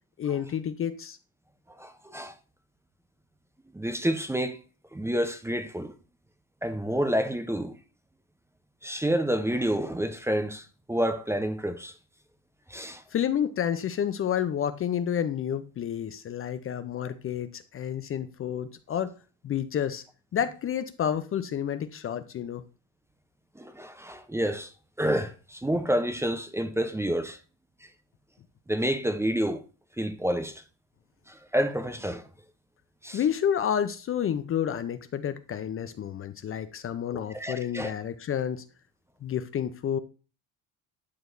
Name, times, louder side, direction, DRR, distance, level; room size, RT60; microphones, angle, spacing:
voice 1, 0.2-1.2 13.1-19.1 19.4-20.0 20.3-22.6 33.1-38.6 39.2-40.0, left 9 dB, 35° left, 0.5 m, -30 dB
voice 2, 1.8-2.3 3.7-4.6 4.9-5.9 6.6-7.8 8.8-11.9 12.7-13.0 23.6-24.7 25.0-27.4 28.7-29.6 30.0-30.6 31.3-32.3 33.0-33.2 37.1-37.9, equal, 5° right, 0.6 m, -29 dB
11.0 x 4.6 x 2.6 m
supercardioid pair, 100°, 38 cm